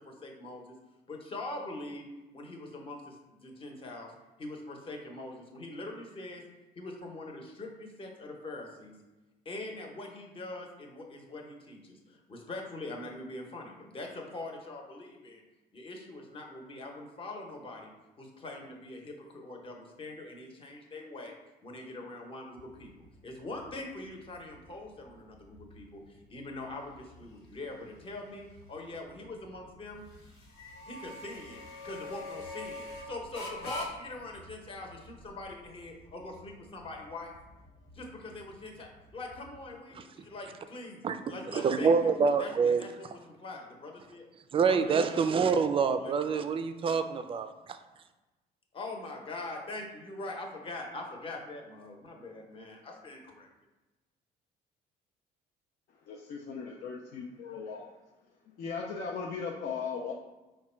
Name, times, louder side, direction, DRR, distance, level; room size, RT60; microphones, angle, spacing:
voice 1, 0.1-0.6 1.1-2.0 2.3-3.0 3.4-4.1 4.4-6.4 6.8-8.9 9.5-12.0 12.3-15.4 15.7-17.9 18.2-21.3 21.6-22.9 23.2-26.0 26.3-28.4 28.7-30.0 30.9-37.3 38.0-41.0 41.3-42.1 42.4-44.3 44.6-45.1 45.4-46.5 48.7-53.5, left 2 dB, 30° left, 0.9 m, -43 dB
sound 1, 22.6-39.8, left 2 dB, 80° left, 1.4 m, -47 dB
voice 2, 41.5-42.8 44.5-47.8, right 5 dB, 30° right, 0.3 m, -26 dB
voice 3, 56.1-57.9 58.6-60.1, left 5 dB, 60° left, 0.5 m, -37 dB
4.7 x 2.2 x 4.3 m
cardioid pair, 110°, 17 cm